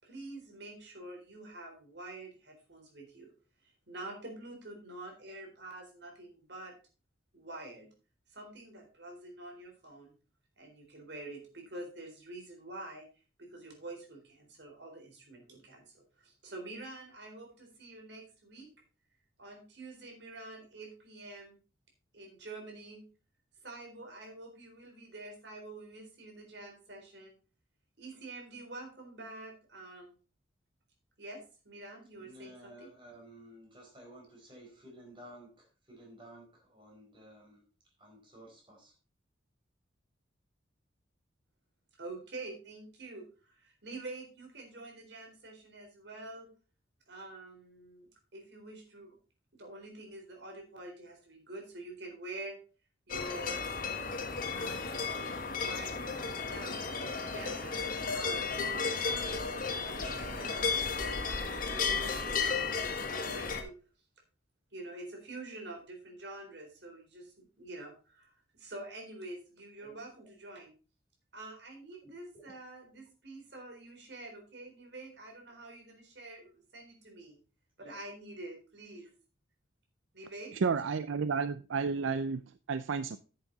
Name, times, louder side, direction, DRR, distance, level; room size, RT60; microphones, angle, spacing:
voice 1, 0.0-3.3 3.6-6.7 7.3-7.9 8.3-10.1 10.6-13.1 13.4-18.7 19.4-21.6 22.1-23.0 23.6-27.3 28.0-30.1 31.2-32.9 41.9-46.5 47.1-49.2 49.5-52.6 53.1-53.6 54.4-54.8 55.1-63.7 64.7-70.8 71.3-77.4 77.8-79.1 80.1-80.5, right 2 dB, 60° right, 3.9 m, -47 dB
voice 2, 32.2-39.0 69.8-70.0 72.0-72.5 77.8-77.9, equal, 25° right, 4.3 m, -54 dB
sound 1, 53.1-63.6, left 5 dB, 45° left, 1.4 m, -34 dB
voice 3, 80.5-82.4 82.7-83.2, right 5 dB, 80° right, 0.5 m, -31 dB
10.0 x 7.7 x 3.9 m
head